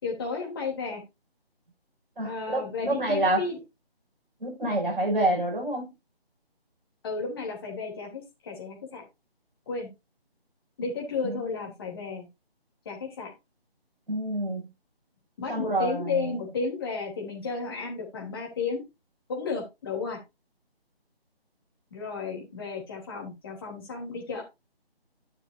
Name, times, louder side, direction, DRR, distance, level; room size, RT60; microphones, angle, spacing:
voice 1, 0.0-1.0 2.2-3.6 7.0-9.0 9.7-9.9 10.8-12.3 12.8-13.3 15.4-18.8 19.3-20.2 21.9-24.4, left 4 dB, 25° left, 3.3 m, -33 dB
voice 2, 2.2-3.4 4.4-5.9 11.2-11.4 14.1-14.7 15.5-16.4, right 1 dB, 55° right, 6.4 m, -27 dB
13.5 x 6.6 x 2.7 m
figure-of-eight pair, 155°, 31 cm